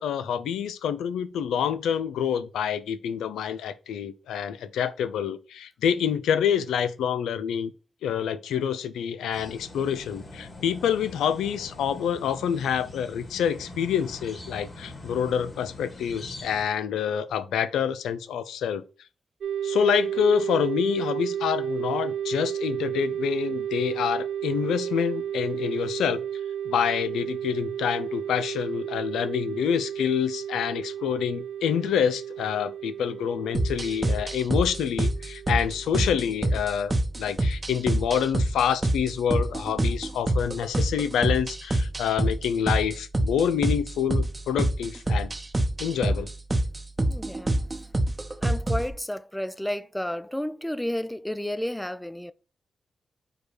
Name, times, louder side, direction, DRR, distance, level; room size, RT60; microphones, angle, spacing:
voice 1, 0.0-7.7 8.0-18.8 19.6-26.2 26.7-45.3 45.8-46.3, left 8 dB, 90° left, 0.4 m, -27 dB
sound 1, 9.3-16.6, left 1 dB, 45° left, 2.4 m, -43 dB
sound 2, 19.4-36.8, right 9 dB, 75° right, 0.4 m, -33 dB
sound 3, 33.5-48.9, right 1 dB, 30° right, 0.8 m, -27 dB
voice 2, 47.1-47.6 48.4-52.3, left 1 dB, 5° left, 0.4 m, -31 dB
5.0 x 2.3 x 4.5 m
supercardioid pair, 45°, 0 cm